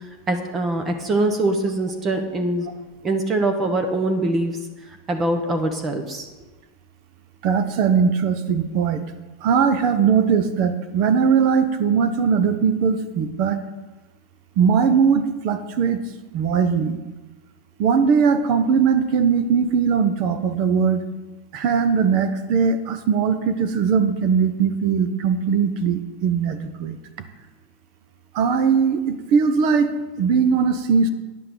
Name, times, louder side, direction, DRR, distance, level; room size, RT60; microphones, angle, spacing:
voice 1, 0.3-2.7 3.0-4.6 5.1-6.3, right 2 dB, 25° right, 6 dB, 1.0 m, -23 dB
voice 2, 7.4-9.0 9.4-13.6 14.6-16.0 16.3-17.0 17.8-21.0 21.5-27.0 28.3-29.9 30.2-31.1, right 6 dB, 50° right, 10 dB, 1.0 m, -20 dB
9.6 x 5.8 x 6.9 m, 1.2 s
supercardioid pair, 140°, 0 cm